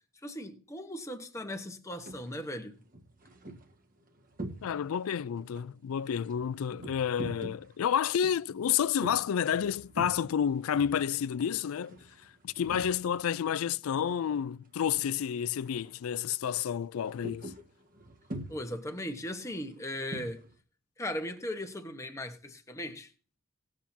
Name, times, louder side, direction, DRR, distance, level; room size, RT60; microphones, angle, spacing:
voice 1, 0.2-2.8 18.5-20.4 21.0-23.1, left 1 dB, 15° left, 1.1 m, -38 dB
sound 1, 1.9-2.3 2.8-5.1 5.4-13.3 13.5-14.7 14.9-15.2 15.6-16.0 16.3-20.5, right 1 dB, 40° right, 1.5 m, -45 dB
voice 2, 4.6-12.0 12.4-17.5, left 8 dB, 85° left, 0.4 m, -30 dB
18.5 x 7.3 x 2.8 m
head